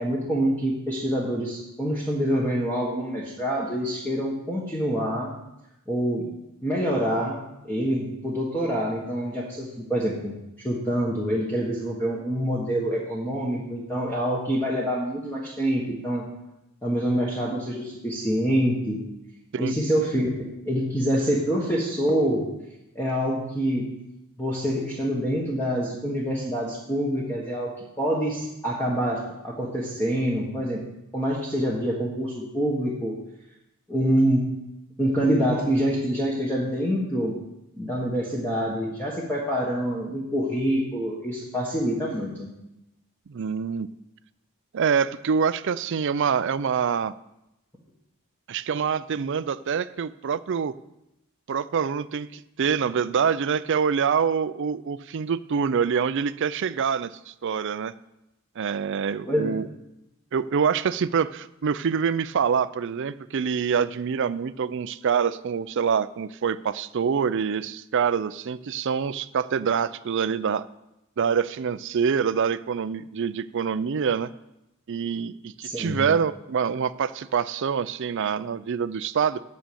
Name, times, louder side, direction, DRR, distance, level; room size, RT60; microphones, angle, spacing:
voice 1, 0.0-5.3 5.9-6.3 6.6-7.4 7.6-10.3 10.6-16.2 16.8-19.0 19.6-20.3 20.6-22.5 22.9-23.9 24.4-30.8 31.1-33.1 33.9-34.5 35.0-37.3 37.8-42.5 59.2-59.6 75.6-76.0, equal, 10° left, -4 dB, 1.4 m, -26 dB
voice 2, 43.3-43.9 44.7-47.1 48.5-50.8 51.5-57.9 58.6-59.7 60.3-70.6 71.2-74.3 74.9-79.4, right 6 dB, 55° right, 15 dB, 0.4 m, -25 dB
8.9 x 6.3 x 7.0 m, 0.89 s
head